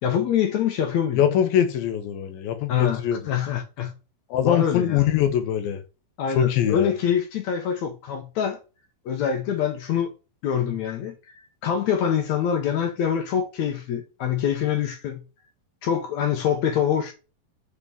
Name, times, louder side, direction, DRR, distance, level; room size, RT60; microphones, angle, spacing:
voice 1, 0.0-1.2 2.7-3.9 4.4-5.0 6.2-8.6 9.1-10.1 10.4-11.2 11.6-15.2 15.8-17.1, left 8 dB, 65° left, 1.9 m, -25 dB
voice 2, 1.1-3.2 4.3-5.8 6.4-6.9, left 10 dB, 85° left, 2.8 m, -23 dB
5.4 x 5.1 x 5.0 m
omnidirectional pair, 4.1 m